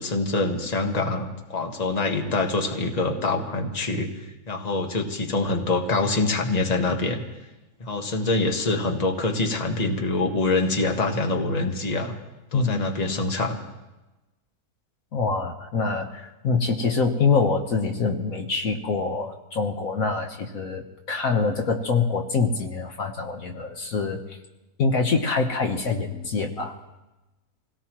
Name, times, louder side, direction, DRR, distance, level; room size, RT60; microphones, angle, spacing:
voice 1, 0.0-4.1 4.5-7.2 7.8-12.1 12.5-13.6, left 3 dB, 30° left, 3 dB, 1.4 m, -25 dB
voice 2, 12.5-12.8 15.1-24.4 24.8-26.8, left 4 dB, 65° left, 3 dB, 1.5 m, -25 dB
26.5 x 17.5 x 3.0 m, 1.1 s
omnidirectional pair, 1.6 m